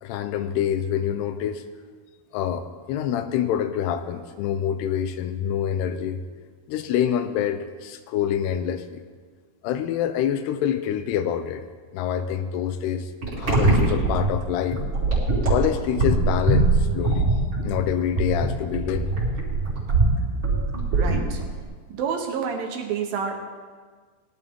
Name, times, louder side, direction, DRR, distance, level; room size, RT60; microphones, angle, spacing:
voice 1, 0.0-1.6 2.3-6.2 6.7-9.0 9.6-11.6 11.9-13.1 13.4-14.8 15.5-17.3 17.6-19.1, left 9 dB, 85° left, 9 dB, 2.8 m, -26 dB
sound 1, 13.2-21.6, right 3 dB, 30° right, 3.4 m, -22 dB
voice 2, 20.9-21.4 21.9-23.4, right 6 dB, 70° right, 2 dB, 2.6 m, -29 dB
18.5 x 11.5 x 3.6 m, 1.5 s
omnidirectional pair, 4.7 m